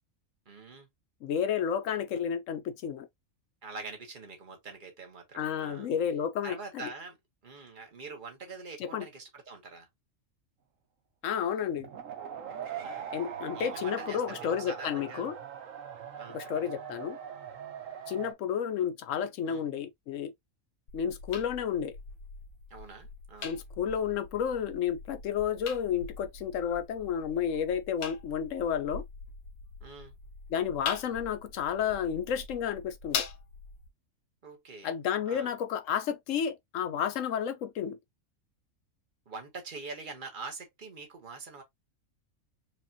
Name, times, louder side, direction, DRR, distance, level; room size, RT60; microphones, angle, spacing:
voice 1, 0.5-0.9 3.6-5.9 6.4-7.2 7.4-9.9 12.7-13.1 13.5-15.3 16.1-16.7 19.5-19.6 22.7-23.5 29.8-30.1 34.4-34.9 35.2-35.5 39.3-41.6, right 4 dB, 40° right, 1.3 m, -44 dB
voice 2, 1.2-3.1 5.4-6.9 8.9-9.1 11.2-11.9 13.1-15.3 16.3-17.2 18.1-20.3 20.9-21.9 23.4-29.0 30.5-33.2 34.8-38.0, left 8 dB, 70° left, 1.1 m, -31 dB
sound 1, 11.8-18.3, right 8 dB, 70° right, 1.2 m, -41 dB
sound 2, 20.9-33.9, left 5 dB, 90° left, 1.3 m, -42 dB
4.8 x 2.5 x 2.7 m
omnidirectional pair, 1.5 m